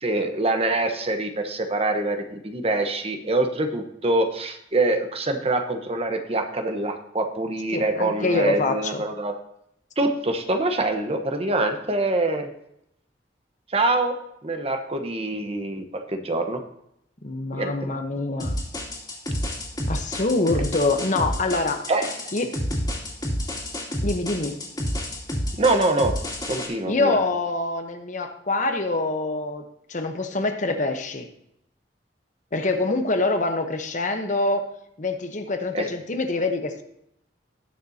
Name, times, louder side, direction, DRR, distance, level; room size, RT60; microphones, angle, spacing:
voice 1, 0.0-9.3 10.0-12.5 13.7-14.2 14.4-16.6 17.5-17.7 21.9-22.1 25.6-26.1 26.5-27.1 35.7-35.9, right 2 dB, 35° right, 5 dB, 1.0 m, -24 dB
voice 2, 7.7-9.0 17.2-18.6 19.9-21.8 22.3-22.5 24.0-24.6 26.7-31.3 32.5-34.6 35.0-36.8, left 2 dB, 45° left, 6 dB, 1.0 m, -25 dB
sound 1, 18.4-26.7, equal, 25° left, 2.6 m, -29 dB
19.0 x 6.7 x 2.8 m, 0.78 s
head